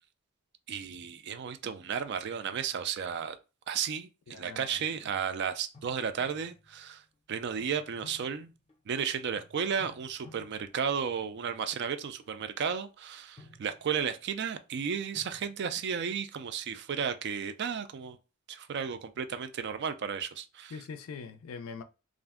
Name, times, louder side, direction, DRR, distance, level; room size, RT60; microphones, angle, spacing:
voice 1, 0.7-3.4 3.7-7.0 7.3-8.5 8.9-18.2 18.5-20.7, right 7 dB, 55° right, 0.3 m, -33 dB
voice 2, 4.3-5.1 20.7-21.8, left 5 dB, 75° left, 0.4 m, -43 dB
sound 1, 5.1-5.2 5.7-6.9 7.6-9.0 9.4-11.7 12.2-12.5 13.2-14.3 15.1-15.5, left 2 dB, 25° left, 0.6 m, -56 dB
2.4 x 2.1 x 3.5 m
head